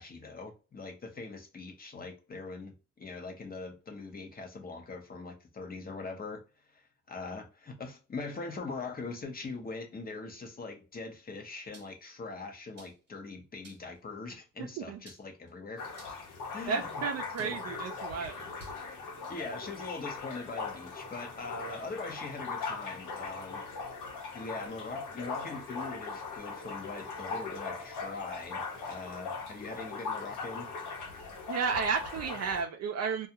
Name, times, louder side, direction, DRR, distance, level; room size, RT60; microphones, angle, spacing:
voice 1, 0.0-6.4 6.7-6.8 7.1-15.9 16.5-17.0 17.4-17.6 19.3-23.7 24.3-30.7, left 3 dB, 30° left, 0.8 m, -42 dB
sound 1, 11.7-12.1 12.8-13.1 13.6-14.0 15.0-15.5 16.0-16.3 17.4-17.7 18.6-18.8, right 3 dB, 35° right, 0.9 m, -55 dB
voice 2, 14.6-15.0 16.7-18.5 31.5-33.3, right 5 dB, 55° right, 0.5 m, -33 dB
sound 2, 15.8-32.6, left 4 dB, 80° left, 1.0 m, -40 dB
2.3 x 2.2 x 2.8 m
cardioid pair, 90°, 30 cm